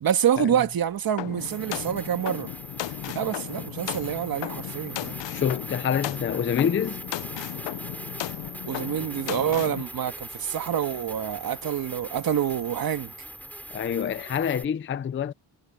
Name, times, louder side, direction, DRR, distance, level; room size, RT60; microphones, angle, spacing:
voice 1, 0.0-2.5 3.1-5.2 8.7-13.1, right 9 dB, 55° right, 1.8 m, -27 dB
sound 1, 1.2-9.8, left 15 dB, 80° left, 0.7 m, -35 dB
sound 2, 1.4-14.6, right 1 dB, 5° left, 3.8 m, -41 dB
voice 2, 5.3-7.0 13.7-15.3, left 8 dB, 30° left, 0.5 m, -27 dB
cardioid pair, 145°, 43 cm